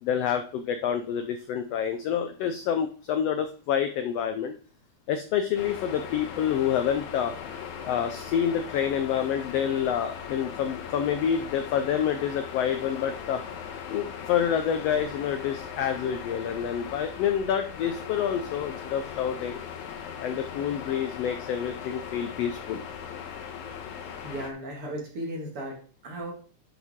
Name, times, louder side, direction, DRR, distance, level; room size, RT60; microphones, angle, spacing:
voice 1, 0.0-4.5 5.1-7.3 7.8-13.4 13.9-19.6 20.2-22.8, left 8 dB, 85° left, 7 dB, 1.4 m, -28 dB
sound 1, 5.6-24.5, left 7 dB, 70° left, 2.3 m, -39 dB
voice 2, 24.2-26.3, right 1 dB, 50° right, 0 dB, 2.7 m, -36 dB
10.5 x 5.4 x 3.6 m, 0.40 s
omnidirectional pair, 3.6 m